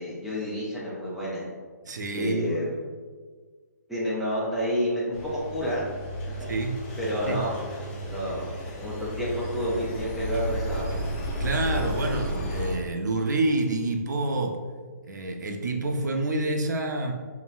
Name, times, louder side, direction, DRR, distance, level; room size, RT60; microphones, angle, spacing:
voice 1, 0.0-1.5 2.1-2.8 3.9-5.9 7.0-7.5 8.0-11.0, equal, ahead, -8 dB, 0.3 m, -29 dB
voice 2, 1.9-2.5 6.5-6.8 7.3-7.4 11.4-14.6 15.0-17.1, right 2 dB, 75° right, 4 dB, 0.4 m, -27 dB
Engine, 5.1-12.7, equal, 35° left, 0.7 m, -33 dB
3.8 x 2.0 x 2.4 m, 1.5 s
hypercardioid pair, 160°, 10 cm